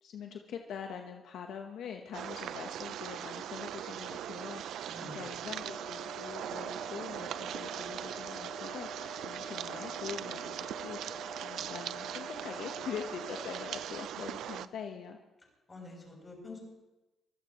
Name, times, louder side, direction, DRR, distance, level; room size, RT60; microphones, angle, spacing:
voice 1, 0.0-15.2, left 7 dB, 75° left, 3 dB, 1.1 m, -44 dB
sound 1, 2.1-14.7, right 10 dB, 75° right, 0.5 m, -40 dB
voice 2, 4.9-5.3 15.7-16.6, left 2 dB, 25° left, -1 dB, 7.8 m, -47 dB
sound 2, 5.5-13.8, equal, 5° left, 6.2 m, -47 dB
25.0 x 16.5 x 3.1 m, 1.0 s
cardioid pair, 90°, 0 cm